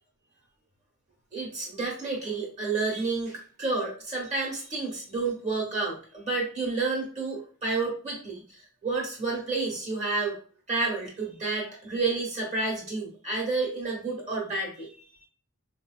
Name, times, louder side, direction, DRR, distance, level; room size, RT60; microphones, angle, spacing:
voice 1, 1.3-8.4 8.8-10.4 10.7-14.9, right 3 dB, 30° right, -2 dB, 1.2 m, -30 dB
4.0 x 2.6 x 2.3 m, 0.42 s
head